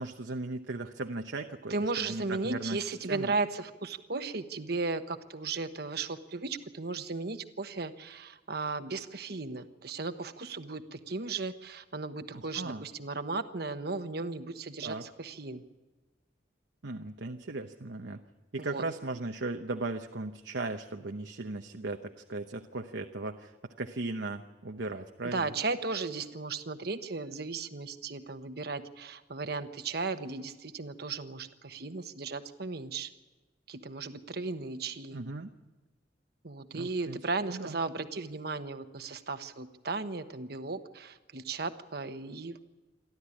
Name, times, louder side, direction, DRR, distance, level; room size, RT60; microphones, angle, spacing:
voice 1, 0.0-3.3 12.3-12.8 14.8-15.0 16.8-18.2 18.5-25.5 35.1-35.5 36.7-37.2 37.5-37.8, right 2 dB, 80° right, 4 dB, 1.0 m, -37 dB
voice 2, 1.7-15.6 18.6-18.8 25.2-33.1 33.7-35.2 36.4-42.6, right 3 dB, 60° right, 9 dB, 1.2 m, -36 dB
28.5 x 12.5 x 10.0 m, 1.2 s
head